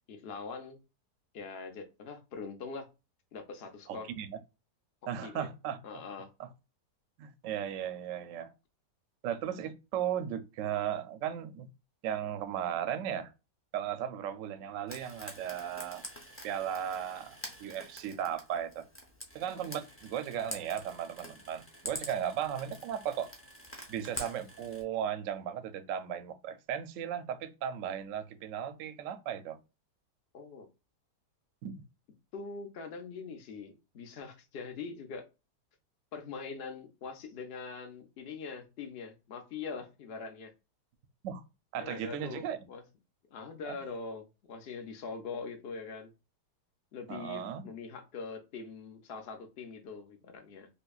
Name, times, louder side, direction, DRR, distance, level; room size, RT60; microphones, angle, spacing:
voice 1, 0.1-0.8 1.3-2.9 3.3-4.1 5.2-5.5 5.8-6.3 30.3-30.7 32.3-35.3 36.1-40.5 41.8-42.8 43.3-46.1 46.9-50.7, left 5 dB, 65° left, 0.6 m, -43 dB
voice 2, 3.9-4.4 5.1-5.8 6.4-6.5 7.2-8.5 9.2-11.7 12.0-13.3 13.7-16.1 16.4-18.9 19.3-23.3 23.9-29.6 31.6-31.8 41.2-41.4 41.7-42.6 43.6-43.8 47.1-47.6, right 9 dB, 65° right, 0.8 m, -36 dB
Frying (food), 14.9-24.8, equal, 20° left, 0.3 m, -46 dB
5.4 x 2.2 x 2.3 m
omnidirectional pair, 1.8 m